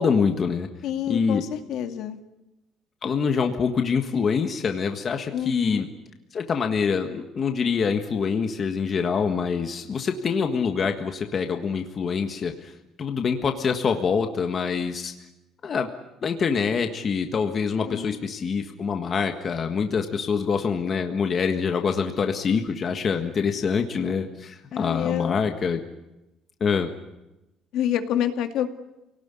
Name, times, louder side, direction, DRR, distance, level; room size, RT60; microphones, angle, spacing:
voice 1, 0.0-0.7 1.1-1.4 3.0-5.9 6.3-12.7 13.0-15.1 15.6-15.9 16.2-25.8 26.6-26.9, left 6 dB, 30° left, 5 dB, 1.5 m, -25 dB
voice 2, 0.8-2.2 5.3-5.8 17.8-18.2 24.7-25.4 27.7-28.7, left 10 dB, 60° left, 6 dB, 2.1 m, -28 dB
28.0 x 18.5 x 9.9 m, 0.96 s
cardioid pair, 175°, 0 cm